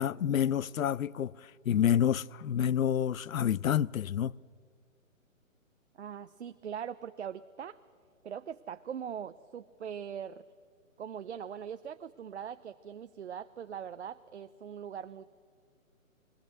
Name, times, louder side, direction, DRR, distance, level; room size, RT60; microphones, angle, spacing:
voice 1, 0.0-1.4 1.7-4.4, left 9 dB, 75° left, 0.6 m, -28 dB
voice 2, 5.9-7.8 8.2-10.4 11.0-15.2, right 8 dB, 55° right, 0.6 m, -41 dB
21.0 x 17.5 x 7.8 m
hypercardioid pair, 160°, 41 cm